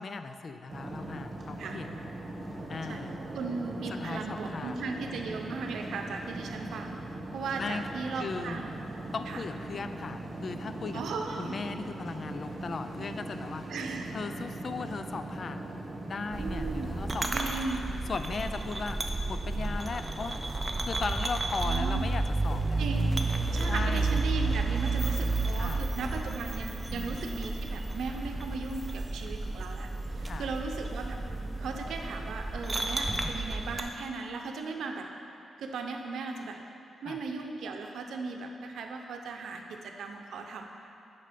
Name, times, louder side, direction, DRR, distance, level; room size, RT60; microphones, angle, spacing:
voice 1, 0.0-1.9 2.7-3.1 3.9-4.7 7.6-7.8 8.2-8.6 9.1-11.0 11.4-13.6 14.1-15.6 16.1-17.6 18.1-19.0 19.3-20.5 20.8-22.8 23.7-24.1 25.6-25.9 26.9-27.2 30.3-30.5 33.1-33.4 37.1-37.2, left 4 dB, 50° left, 9 dB, 0.4 m, -37 dB
sound 1, 0.7-17.2, right 1 dB, 45° right, 1.2 m, -40 dB
voice 2, 0.9-1.8 2.9-3.0 3.3-7.0 7.3-8.7 9.3-9.4 10.9-11.6 13.7-14.1 16.4-16.9 17.3-17.9 21.6-22.1 22.8-31.2 31.6-35.1 35.6-36.6 37.0-40.7, right 4 dB, 90° right, 3 dB, 0.7 m, -37 dB
sound 2, 16.3-33.8, right 2 dB, 25° right, 0.5 m, -31 dB
7.5 x 5.5 x 5.1 m, 2.8 s
cardioid pair, 110°, 0 cm